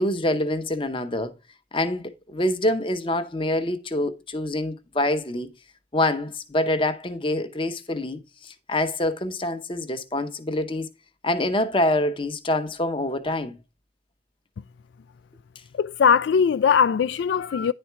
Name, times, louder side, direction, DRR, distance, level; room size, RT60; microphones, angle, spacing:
voice 1, 0.0-1.3 1.7-5.5 5.9-10.9 11.2-13.6, left 1 dB, 30° left, 0.8 m, -26 dB
voice 2, 15.8-17.7, left 6 dB, 75° left, 0.3 m, -20 dB
10.0 x 4.3 x 4.4 m
head